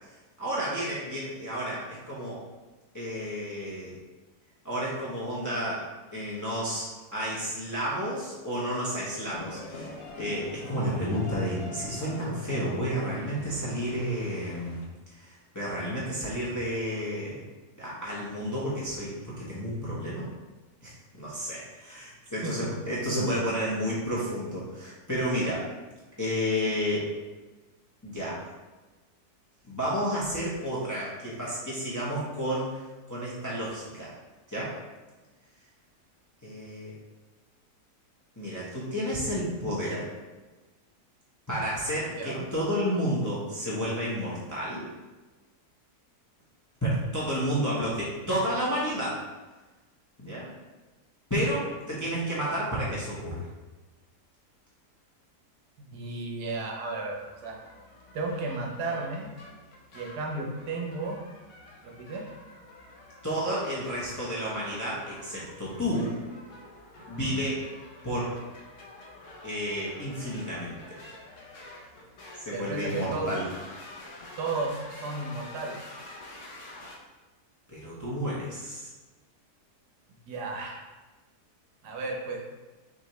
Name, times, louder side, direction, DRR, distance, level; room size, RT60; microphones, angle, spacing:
voice 1, 0.4-2.4 2.9-3.9 4.6-5.8 6.1-6.9 7.1-9.9 10.2-14.8 15.1-17.4 17.8-20.3 20.8-25.7 26.2-27.1 28.0-28.4 29.6-32.8 33.1-34.1 34.5-34.7 36.4-37.0 38.4-40.1 41.5-44.8 46.8-49.2 50.2-50.5 51.3-53.4 63.2-66.2 67.1-67.6 68.0-68.3 69.4-70.8 72.4-73.4 77.7-78.9, equal, 15° left, -7 dB, 0.8 m, -31 dB
sound 1, 9.3-14.9, left 2 dB, 80° left, 1.2 m, -43 dB
voice 2, 42.1-42.5 55.9-57.5 58.1-59.3 59.9-61.2 61.8-62.2 67.1-67.4 72.5-73.3 74.4-75.8 80.3-80.9 81.8-82.4, right 3 dB, 80° right, 0 dB, 1.4 m, -33 dB
sound 2, 57.1-77.0, left 2 dB, 55° left, 1.0 m, -48 dB
6.1 x 2.8 x 3.1 m, 1.2 s
omnidirectional pair, 1.7 m